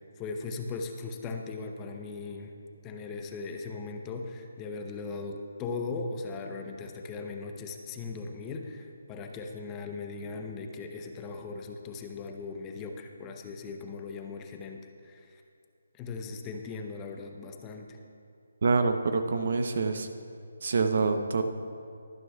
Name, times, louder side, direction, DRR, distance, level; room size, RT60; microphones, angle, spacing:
voice 1, 0.0-2.5 2.8-15.4 15.9-18.0, left 4 dB, 15° left, 4 dB, 0.7 m, -38 dB
voice 2, 18.6-20.1 20.6-21.4, right 4 dB, 60° right, 8 dB, 0.8 m, -26 dB
23.5 x 9.3 x 2.3 m, 2.5 s
hypercardioid pair, 160°, 0 cm